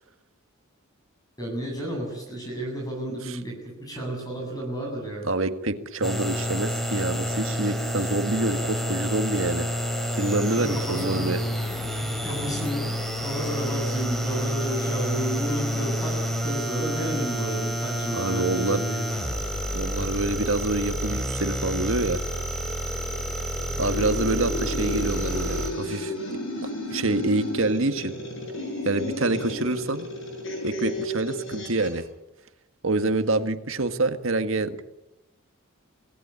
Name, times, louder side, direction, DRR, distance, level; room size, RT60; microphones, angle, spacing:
voice 1, 1.4-5.3 10.5-11.2 12.0-16.2 16.4-19.0, right 1 dB, 20° left, 1 dB, 7.7 m, -32 dB
voice 2, 5.3-9.7 10.2-11.4 18.1-18.8 19.7-22.2 23.8-26.1 26.9-28.1 28.8-30.1 30.6-32.0 32.8-34.8, right 2 dB, 70° right, 9 dB, 1.7 m, -26 dB
sound 1, 6.0-25.7, equal, ahead, 3.6 m, -29 dB
sound 2, 23.8-32.0, left 1 dB, 60° left, 7.6 m, -33 dB
25.5 x 18.0 x 9.7 m, 0.96 s
head